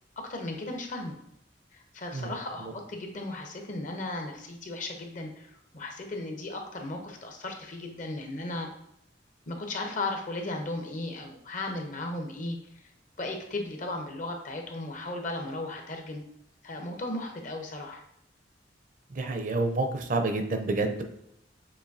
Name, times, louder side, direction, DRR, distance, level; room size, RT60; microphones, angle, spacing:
voice 1, 0.2-1.2 1.7-8.7 9.5-12.6 13.2-16.2 16.6-18.0, left 2 dB, 45° left, 3 dB, 0.7 m, -36 dB
voice 2, 19.1-21.0, right 2 dB, 45° right, 6 dB, 0.5 m, -28 dB
7.0 x 2.6 x 2.6 m, 0.78 s
head